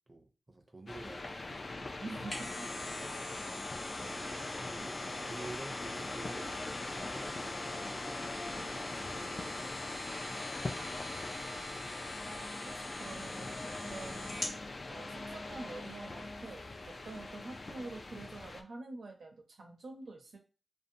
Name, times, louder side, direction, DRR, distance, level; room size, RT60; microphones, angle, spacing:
voice 1, 0.0-2.3 3.0-6.5 6.9-8.2 8.5-10.3, right 2 dB, 30° right, 4 dB, 0.5 m, -51 dB
sound 1, 0.9-18.6, left 2 dB, 45° left, 0.3 m, -42 dB
sound 2, 2.0-14.6 15.1-15.2, left 1 dB, 65° left, 1.1 m, -44 dB
voice 2, 2.0-2.7 12.3-13.5 13.8-14.3 14.9-16.6 17.0-20.4, right 3 dB, 80° right, 3 dB, 0.6 m, -46 dB
2.6 x 2.1 x 2.6 m, 0.35 s
wide cardioid pair, 110°, 0 cm